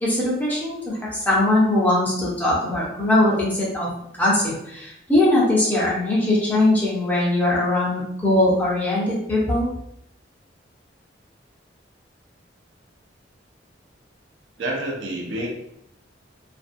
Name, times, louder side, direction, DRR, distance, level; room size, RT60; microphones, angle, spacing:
voice 1, 0.0-3.9 4.2-9.7, left 1 dB, 10° left, -6 dB, 0.7 m, -21 dB
voice 2, 14.6-15.5, right 1 dB, 70° right, 0 dB, 0.5 m, -28 dB
2.5 x 2.2 x 2.5 m, 0.76 s
head